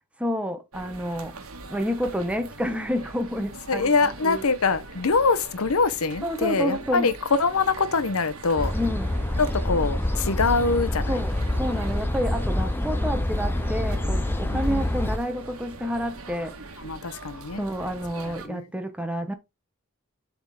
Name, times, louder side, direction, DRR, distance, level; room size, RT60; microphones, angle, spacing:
voice 1, 0.2-1.4 1.7-4.4 6.2-7.1 8.7-9.2 11.1-16.5 17.6-19.4, equal, 5° right, 0.8 m, -29 dB
sound 1, 0.7-18.5, right 2 dB, 80° right, 1.4 m, -41 dB
voice 2, 3.7-7.1 7.4-8.7 9.4-11.2 14.5-14.8 16.8-17.7 18.2-18.6, left 4 dB, 80° left, 0.8 m, -24 dB
sound 2, 8.6-15.2, left 1 dB, 10° left, 0.4 m, -26 dB
8.0 x 3.7 x 4.8 m
head